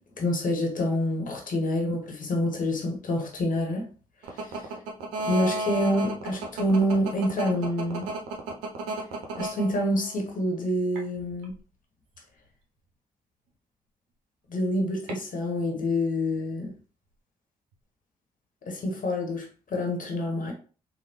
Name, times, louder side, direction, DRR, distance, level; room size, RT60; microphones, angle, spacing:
voice 1, 0.2-3.9 4.3-4.7 5.2-8.1 9.4-11.5 14.5-16.7 18.6-20.5, left 1 dB, 50° left, 1.1 m, -27 dB
sound 1, 4.2-10.2 11.0-11.5 15.1-15.2, right 3 dB, 85° right, 0.6 m, -32 dB
3.2 x 2.2 x 3.0 m
hypercardioid pair, 40°, 17 cm